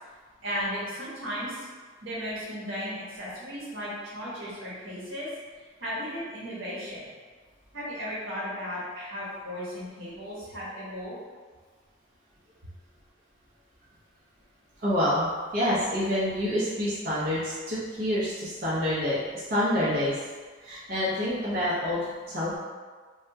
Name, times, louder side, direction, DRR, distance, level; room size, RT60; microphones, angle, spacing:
voice 1, 0.4-1.6 2.0-5.3 5.8-7.0 7.7-11.2, equal, 85° right, -7 dB, 1.1 m, -35 dB
voice 2, 14.8-20.2 20.6-22.6, left 1 dB, 50° right, -10 dB, 0.7 m, -27 dB
3.4 x 2.2 x 2.7 m, 1.5 s
head